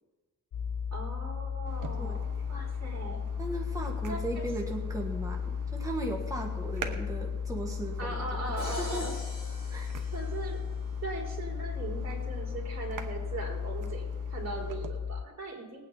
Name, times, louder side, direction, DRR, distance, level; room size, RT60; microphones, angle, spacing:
sound 1, 0.5-15.2, left 6 dB, 80° left, 0.7 m, -35 dB
voice 1, 0.9-3.2 4.1-4.4 8.0-9.1 10.1-10.7 11.0-14.0 14.3-15.8, right 2 dB, 55° right, -2 dB, 4.1 m, -39 dB
sound 2, 1.7-14.9, right 6 dB, 75° right, 1.2 m, -48 dB
voice 2, 3.4-9.1 9.7-9.9, right 1 dB, 10° right, 0 dB, 1.6 m, -37 dB
Crash cymbal, 8.6-10.8, left 1 dB, 20° left, 5.3 m, -45 dB
19.5 x 9.0 x 4.1 m, 1.2 s
wide cardioid pair, 125°, 31 cm